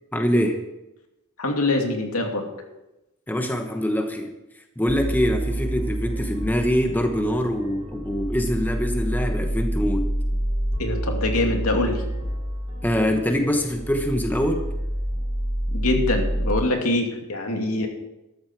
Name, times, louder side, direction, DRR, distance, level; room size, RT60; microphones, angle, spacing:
voice 1, 0.1-0.6 3.3-4.3 4.8-10.1 12.8-14.6, equal, 10° left, 5 dB, 1.0 m, -24 dB
voice 2, 1.4-2.4 10.8-12.0 15.7-17.9, left 2 dB, 85° left, 2 dB, 2.5 m, -24 dB
sound 1, 4.9-16.6, right 1 dB, 30° right, 4.3 m, -28 dB
13.5 x 12.5 x 4.6 m, 0.95 s
head